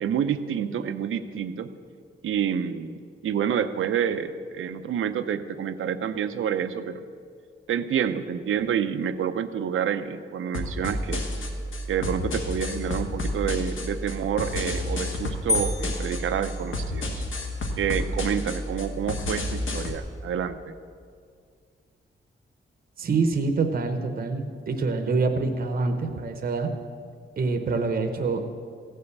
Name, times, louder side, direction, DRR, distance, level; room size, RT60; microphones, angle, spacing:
voice 1, 0.0-1.7 2.2-7.0 7.7-11.3 11.9-17.2 17.8-20.7, right 8 dB, 90° right, 10 dB, 0.6 m, -28 dB
sound 1, 10.5-20.0, left 1 dB, 75° left, 1.5 m, -31 dB
sound 2, 15.5-17.3, left 3 dB, 55° left, 1.4 m, -31 dB
voice 2, 23.0-26.7 27.4-28.4, right 4 dB, 45° right, 5 dB, 0.8 m, -26 dB
15.0 x 5.6 x 8.0 m, 2.2 s
wide cardioid pair, 165°, 20 cm